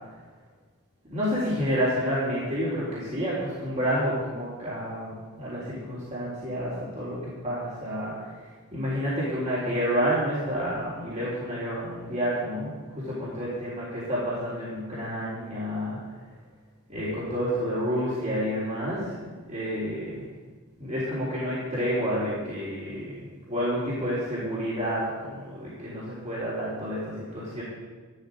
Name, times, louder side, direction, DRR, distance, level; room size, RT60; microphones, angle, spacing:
voice 1, 1.1-16.0 16.9-20.2 20.8-27.6, equal, 35° right, -8 dB, 3.8 m, -29 dB
13.5 x 12.0 x 5.1 m, 1.4 s
head